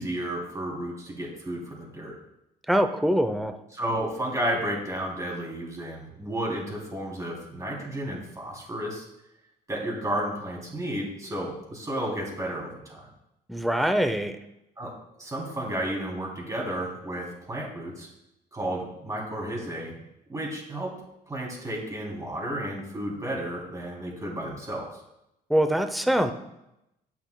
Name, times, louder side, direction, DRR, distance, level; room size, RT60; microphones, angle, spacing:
voice 1, 0.0-2.1 3.7-9.0 9.7-13.0 14.8-14.9 15.2-18.1 18.5-19.9 20.3-20.9 21.3-24.9, right 1 dB, 20° right, -3 dB, 3.1 m, -32 dB
voice 2, 2.7-3.5 13.5-14.3 25.5-26.3, equal, ahead, 7 dB, 0.6 m, -23 dB
17.5 x 5.9 x 2.3 m, 0.85 s
cardioid pair, 110°, 17 cm